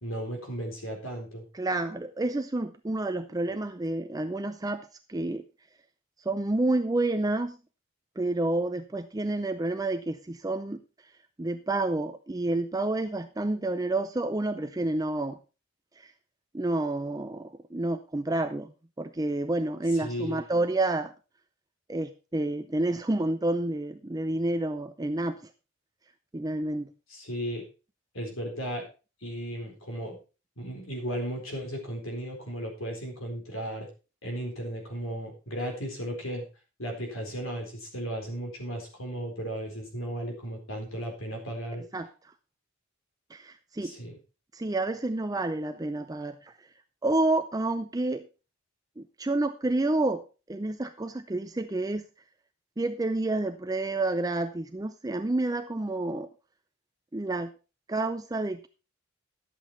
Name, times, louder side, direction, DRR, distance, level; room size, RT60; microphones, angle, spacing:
voice 1, 0.0-1.5 20.0-20.4 27.1-27.6 28.1-28.8 29.2-30.2 30.6-33.9 34.2-36.5 36.8-41.8 43.8-44.2, right 1 dB, 70° left, 2 dB, 4.2 m, -35 dB
voice 2, 1.5-5.4 6.3-7.6 8.2-10.8 11.4-15.4 16.0-16.1 16.5-18.7 19.0-21.1 21.9-25.4 26.3-26.9 41.9-42.1 43.3-43.9 44.5-46.5 47.0-48.3 49.0-50.2 50.5-52.0 52.8-56.3 57.1-57.5 57.9-58.7, right 2 dB, 15° right, 9 dB, 0.5 m, -29 dB
12.0 x 8.1 x 4.4 m, 0.32 s
head